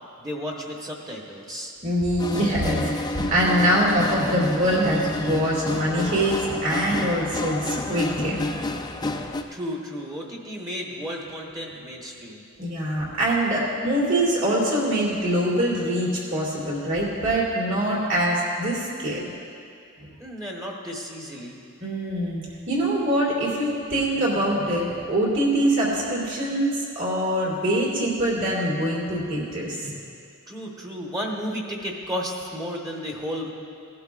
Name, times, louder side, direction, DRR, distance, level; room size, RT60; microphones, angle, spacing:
voice 1, 0.2-1.7 9.5-12.4 20.2-21.6 30.5-33.5, equal, 20° right, -1 dB, 1.0 m, -33 dB
voice 2, 1.8-8.4 12.6-19.2 21.8-29.9, right 1 dB, 60° right, -4 dB, 3.0 m, -24 dB
sound 1, 2.2-9.4, left 2 dB, 20° left, 0.4 m, -30 dB
17.5 x 11.5 x 2.4 m, 2.4 s
head